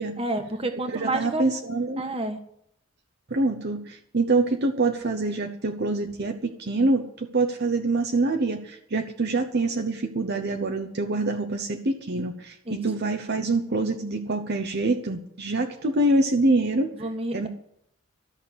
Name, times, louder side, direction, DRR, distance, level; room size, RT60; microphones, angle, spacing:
voice 1, 0.2-1.4 2.0-2.4 12.6-12.8 17.0-17.5, right 2 dB, 25° right, 6 dB, 1.4 m, -29 dB
voice 2, 0.9-2.0 3.3-16.9 17.3-17.5, right 2 dB, 50° right, 5 dB, 0.9 m, -25 dB
13.5 x 6.6 x 9.6 m, 0.72 s
head